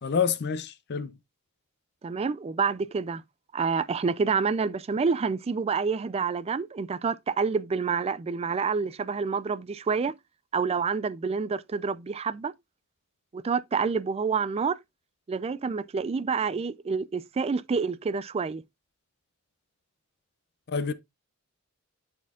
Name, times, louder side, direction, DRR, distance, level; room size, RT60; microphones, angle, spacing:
voice 1, 0.0-1.2 20.7-20.9, left 6 dB, 50° left, 0.5 m, -28 dB
voice 2, 2.0-3.2 3.5-10.1 10.5-12.5 13.3-14.8 15.3-18.6, right 5 dB, 30° right, 0.3 m, -28 dB
11.5 x 4.3 x 2.3 m
head